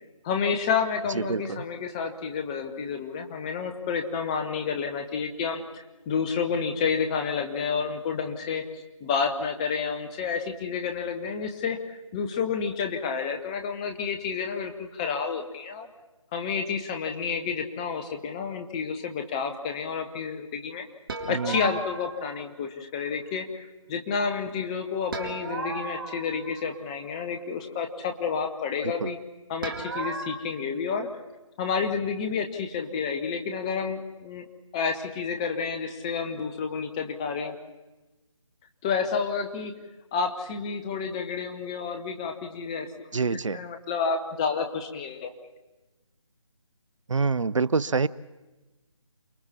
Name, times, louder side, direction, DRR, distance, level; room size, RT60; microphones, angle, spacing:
voice 1, 0.2-5.6 6.1-15.9 16.3-20.8 21.3-29.2 29.5-31.1 31.6-34.5 34.7-37.5 38.8-39.7 40.1-45.3, left 6 dB, 10° left, 6 dB, 0.7 m, -30 dB
voice 2, 1.2-1.6 21.3-21.7 28.8-29.1 43.1-43.6 47.1-48.1, right 4 dB, 70° right, 20 dB, 0.6 m, -26 dB
sound 1, 21.1-22.4 25.1-27.0 29.6-30.4, right 3 dB, 40° right, 2.2 m, -35 dB
28.5 x 21.0 x 4.3 m, 1.1 s
figure-of-eight pair, 155°, 17 cm